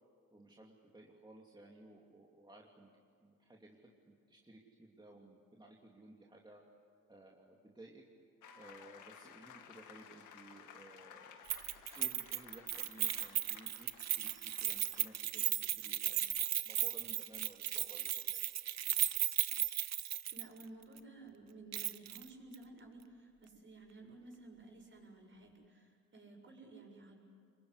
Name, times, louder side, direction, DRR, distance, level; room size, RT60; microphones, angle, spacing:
voice 1, 0.3-6.6 7.1-8.0 8.5-16.4 16.6-18.4, right 1 dB, 15° right, -2 dB, 2.9 m, -57 dB
sound 1, 8.4-15.5, left 8 dB, 80° left, 2.2 m, -56 dB
Keys jangling, 11.5-20.6 21.0-21.1 21.7-22.2 22.5-22.6, right 12 dB, 60° right, 0.8 m, -36 dB
voice 2, 20.3-27.1, right 2 dB, 40° right, 1 dB, 7.3 m, -54 dB
26.0 x 22.5 x 9.9 m, 2.3 s
cardioid pair, 90°, 30 cm